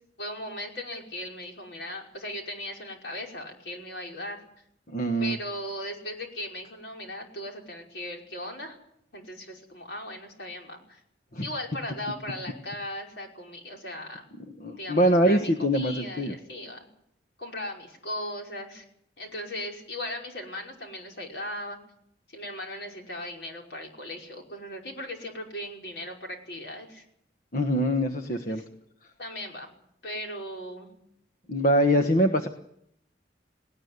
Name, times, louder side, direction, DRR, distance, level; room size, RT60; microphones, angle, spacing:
voice 1, 0.2-4.4 5.2-8.8 9.1-11.0 11.4-14.3 14.8-16.8 17.4-18.9 19.2-21.8 22.3-27.0 28.3-28.7 29.2-29.7 30.0-30.9, left 1 dB, 75° left, 1 dB, 5.5 m, -38 dB
voice 2, 4.9-5.3 11.3-11.5 14.6-16.3 27.5-28.6 31.5-32.5, equal, 50° left, 5 dB, 1.4 m, -23 dB
19.0 x 18.5 x 9.7 m, 0.73 s
head